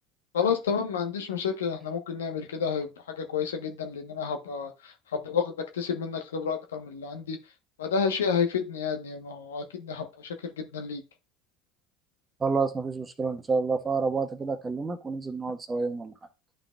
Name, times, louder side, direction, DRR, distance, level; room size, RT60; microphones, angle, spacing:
voice 1, 0.3-2.9 3.2-4.7 5.1-7.4 7.8-11.0, left 6 dB, 85° left, 0.9 m, -30 dB
voice 2, 12.4-16.1, right 4 dB, 25° right, 1.1 m, -29 dB
11.0 x 4.0 x 2.3 m
hypercardioid pair, 75°, 0 cm